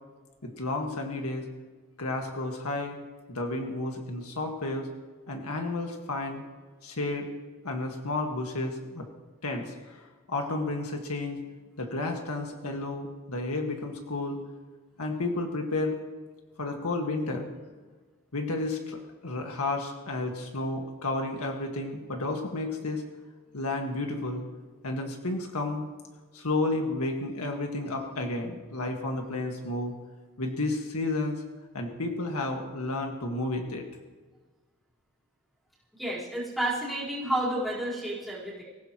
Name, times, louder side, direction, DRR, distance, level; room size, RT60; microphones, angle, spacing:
voice 1, 0.4-1.5 2.0-3.0 3.3-4.9 5.3-6.4 6.8-7.3 7.6-9.1 9.4-10.0 10.3-11.4 11.8-14.4 15.0-16.0 16.6-17.5 18.3-23.0 23.5-24.5 24.8-25.8 26.3-29.9 30.4-31.4 31.7-33.8, left 2 dB, 85° left, 2 dB, 1.8 m, -31 dB
voice 2, 35.9-38.6, right 1 dB, ahead, -8 dB, 4.3 m, -31 dB
25.0 x 15.5 x 3.1 m, 1.3 s
head